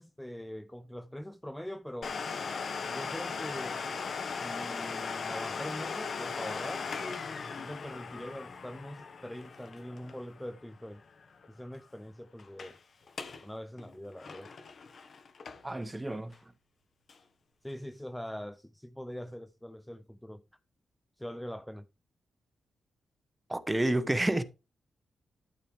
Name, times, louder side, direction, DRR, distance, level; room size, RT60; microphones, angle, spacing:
voice 1, 0.0-2.2 2.8-3.8 4.2-6.9 7.5-11.0 11.5-12.8 13.4-14.5 17.6-20.4 21.2-21.9, equal, 5° left, 0.5 m, -43 dB
Domestic sounds home sounds, 2.0-11.5 11.7-11.8 12.4-12.8 13.1-13.4 13.8-15.8 16.3-16.4 17.1-17.2, left 5 dB, 55° left, 1.5 m, -38 dB
voice 2, 15.6-16.3 23.5-24.4, right 1 dB, 15° right, 1.1 m, -29 dB
12.5 x 6.7 x 3.5 m
cardioid pair, 90°, 0 cm